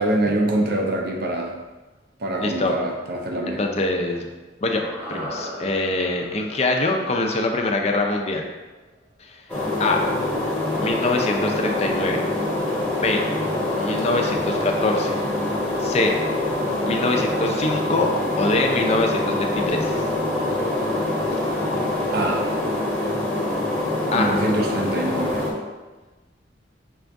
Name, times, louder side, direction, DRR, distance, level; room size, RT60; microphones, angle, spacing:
voice 1, 0.0-1.6 2.2-3.6 22.1-22.5 24.1-25.5, right 1 dB, 55° right, 1 dB, 0.6 m, -24 dB
voice 2, 2.4-2.8 3.5-4.3 4.6-4.8 5.1-8.5 9.2-9.4 9.8-10.0 10.8-12.2 12.9-13.2 13.8-15.2 15.8-16.2 16.8-18.1 18.4-19.9 24.1-24.4, left 2 dB, 35° left, 2 dB, 0.5 m, -23 dB
sound 1, 4.8-9.1 9.3-9.4, equal, 10° right, 0.7 m, -38 dB
sound 2, 9.5-25.5, left 1 dB, 10° left, 1.0 m, -25 dB
6.1 x 2.5 x 3.4 m, 1.2 s
head